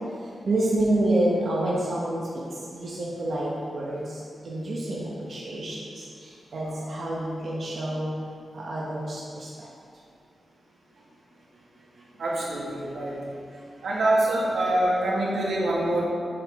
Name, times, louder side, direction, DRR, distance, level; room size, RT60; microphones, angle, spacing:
voice 1, 0.5-2.2 2.7-4.0 4.4-5.8 6.5-8.1 8.6-9.5, right 1 dB, 50° right, -5 dB, 0.9 m, -27 dB
voice 2, 12.2-13.2 13.8-16.0, right 1 dB, 85° right, -5 dB, 1.7 m, -25 dB
7.7 x 5.9 x 3.5 m, 2.3 s
wide cardioid pair, 180°, 0 cm